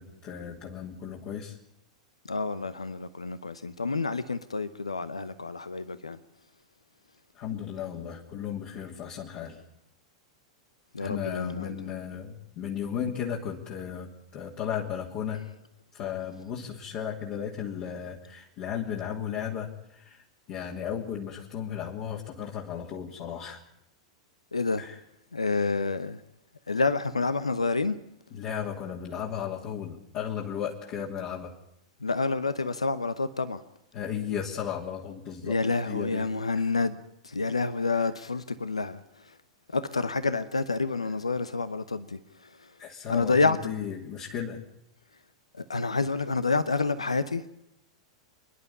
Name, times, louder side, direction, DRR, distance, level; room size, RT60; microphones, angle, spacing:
voice 1, 0.0-1.6 7.3-9.6 11.0-15.4 15.9-23.6 24.8-25.0 28.3-31.5 33.9-36.3 36.5-36.7 42.8-44.6, left 8 dB, 45° left, 3.0 m, -35 dB
voice 2, 2.3-6.2 10.9-11.7 24.5-24.8 25.3-26.2 26.7-27.9 32.0-33.6 35.4-39.0 39.7-42.2 43.1-43.6 45.6-47.5, left 3 dB, 90° left, 0.8 m, -28 dB
27.0 x 11.5 x 9.9 m
figure-of-eight pair, 95°, 3 cm